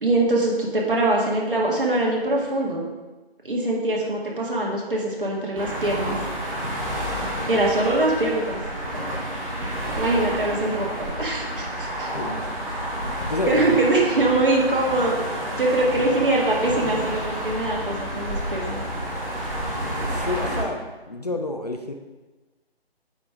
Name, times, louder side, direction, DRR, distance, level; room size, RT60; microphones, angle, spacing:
voice 1, 0.0-2.8 3.4-6.2 7.5-8.6 10.0-12.1 13.5-15.1 15.6-18.8, right 2 dB, 55° right, -2 dB, 1.9 m, -23 dB
sound 1, 5.6-20.6, equal, 35° right, 1.9 m, -30 dB
voice 2, 12.1-12.5 13.0-13.8 20.1-21.9, left 2 dB, 40° left, 4 dB, 0.5 m, -30 dB
8.7 x 4.7 x 3.7 m, 1.2 s
figure-of-eight pair, 155°, 32 cm